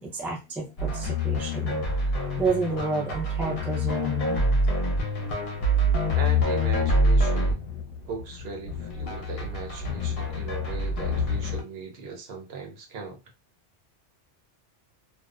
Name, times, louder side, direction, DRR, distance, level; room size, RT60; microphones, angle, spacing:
voice 1, 0.0-1.9 2.4-4.6, right 3 dB, 5° right, 0.3 m, -30 dB
sound 1, 0.8-11.6, left 1 dB, 60° left, 0.8 m, -26 dB
voice 2, 6.1-7.7 8.1-13.2, right 4 dB, 60° right, 0.9 m, -38 dB
2.6 x 2.0 x 2.3 m
omnidirectional pair, 1.2 m